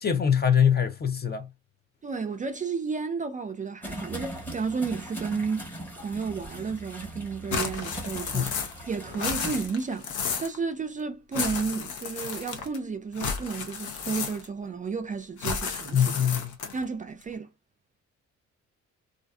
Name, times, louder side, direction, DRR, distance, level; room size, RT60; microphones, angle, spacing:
voice 1, 0.0-1.5 8.3-8.5 15.9-16.5, left 8 dB, 35° left, 0.6 m, -23 dB
voice 2, 2.0-8.5 8.9-16.1 16.7-17.5, right 5 dB, 25° right, 0.4 m, -32 dB
sound 1, 3.8-9.7, right 1 dB, 5° left, 1.1 m, -40 dB
sound 2, 7.5-8.9 9.1-10.6 11.3-12.8 13.2-14.6 15.4-16.8, left 6 dB, 75° left, 0.8 m, -32 dB
2.5 x 2.4 x 2.3 m
cardioid pair, 90°, 30 cm